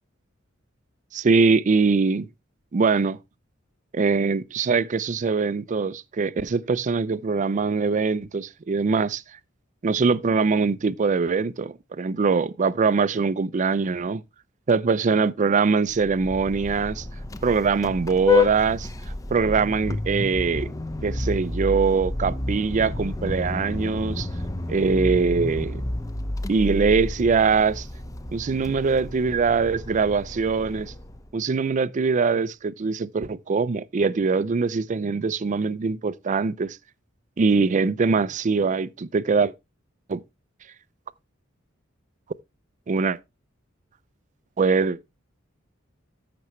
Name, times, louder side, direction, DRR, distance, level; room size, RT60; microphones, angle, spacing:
voice 1, 1.1-2.3 2.7-3.2 3.9-9.2 9.8-14.2 14.7-17.1 17.4-18.9 19.3-20.7 21.0-24.3 24.7-25.8 26.5-27.9 28.3-30.9 31.3-36.8 37.4-39.5 40.1-40.2 42.9-43.2 44.6-45.0, right 4 dB, 40° right, 0.4 m, -22 dB
Vehicle horn car horn honking, 15.9-31.3, left 3 dB, 15° left, 0.6 m, -30 dB
13.5 x 6.0 x 3.1 m
head